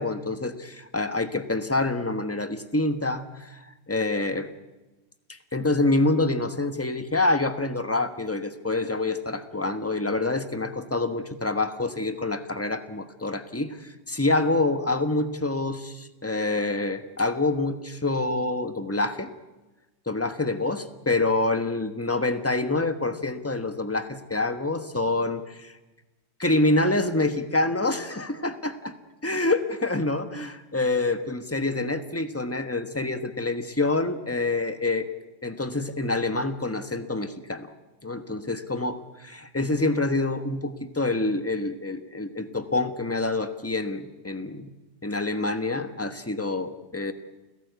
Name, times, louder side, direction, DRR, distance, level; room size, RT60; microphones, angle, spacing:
voice 1, 0.0-4.5 5.3-19.3 20.1-25.7 26.4-28.7 29.2-35.1 35.4-37.7 38.0-44.7 45.0-47.1, left 2 dB, 10° left, 9 dB, 1.1 m, -26 dB
29.0 x 17.0 x 8.3 m, 1.1 s
omnidirectional pair, 1.8 m